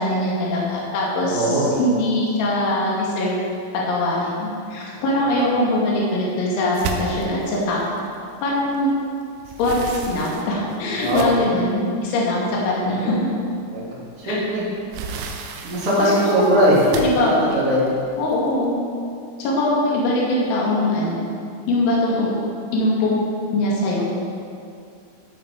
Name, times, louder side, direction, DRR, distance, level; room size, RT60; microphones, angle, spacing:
voice 1, 0.0-3.4 3.7-8.1 8.4-8.9 9.6-13.4 14.2-14.4 16.0-17.6 18.2-18.8 19.4-21.3 21.7-22.3 22.7-23.3 23.5-24.0, left 1 dB, 75° left, -4 dB, 4.7 m, -22 dB
voice 2, 1.2-1.8 4.9-5.0 10.9-11.3 12.8-13.1 13.7-13.8 14.2-14.6 15.6-16.8 17.1-18.1, equal, 30° right, -8 dB, 3.4 m, -21 dB
sound 1, 6.7-8.9 9.3-11.7 12.3-12.4 12.9-13.0 14.4-18.7, right 5 dB, 85° right, 3.5 m, -34 dB
16.0 x 8.7 x 4.8 m, 2.4 s
omnidirectional pair, 5.7 m